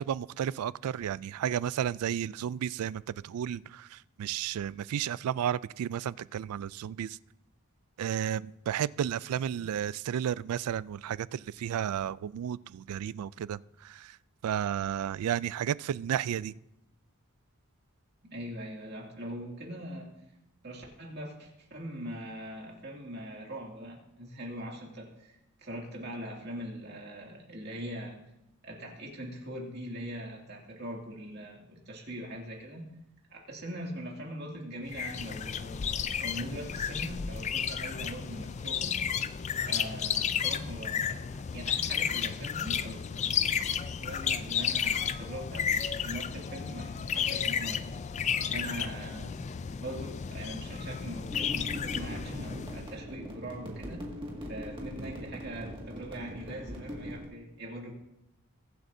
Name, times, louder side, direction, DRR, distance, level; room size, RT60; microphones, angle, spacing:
voice 1, 0.0-7.2 8.0-14.2 14.4-16.5, right 9 dB, 85° right, 0.3 m, -33 dB
voice 2, 9.3-9.7 18.2-20.1 20.6-28.2 28.6-32.9 33.3-39.0 39.6-43.5 44.0-47.8 48.5-49.4 49.8-54.0 54.4-57.9, equal, 50° right, 2.4 m, -41 dB
sound 1, 34.9-52.9, left 8 dB, 30° left, 0.3 m, -32 dB
sound 2, 51.3-57.2, equal, 25° right, 2.0 m, -41 dB
22.0 x 7.7 x 2.7 m
head